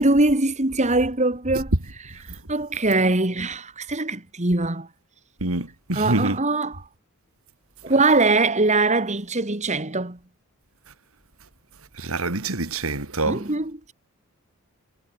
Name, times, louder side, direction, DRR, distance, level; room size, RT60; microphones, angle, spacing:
voice 1, 0.0-1.7 2.5-4.9 5.9-6.8 7.8-10.2 13.3-13.9, right 2 dB, 30° right, 2.1 m, -22 dB
voice 2, 5.4-6.4 12.0-13.4, right 2 dB, 70° right, 2.8 m, -26 dB
head